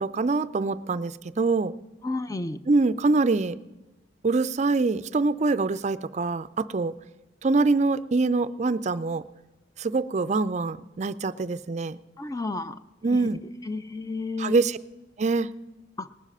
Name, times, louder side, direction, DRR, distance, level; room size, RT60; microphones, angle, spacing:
voice 1, 0.0-1.7 2.7-3.6 4.2-6.9 7.4-9.2 9.8-12.0 13.0-13.4 14.4-14.8 15.2-15.5, right 3 dB, 40° right, 15 dB, 0.4 m, -24 dB
voice 2, 2.0-2.6 12.2-12.8 13.1-13.3 13.7-14.6 16.0-16.1, left 3 dB, 20° left, 11 dB, 0.5 m, -31 dB
19.5 x 7.4 x 5.5 m, 1.1 s
head